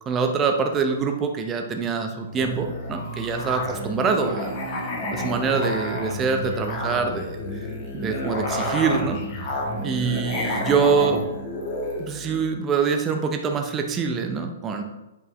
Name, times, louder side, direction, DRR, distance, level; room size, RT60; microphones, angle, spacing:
voice 1, 0.1-4.5 5.1-7.4 7.9-9.2 9.8-11.2 12.0-14.8, right 5 dB, 20° right, 5 dB, 0.8 m, -24 dB
Musical instrument, 2.3-12.5, left 1 dB, 35° left, 1.4 m, -30 dB
8.3 x 5.4 x 3.2 m, 1.0 s
figure-of-eight pair, 115°, 0 cm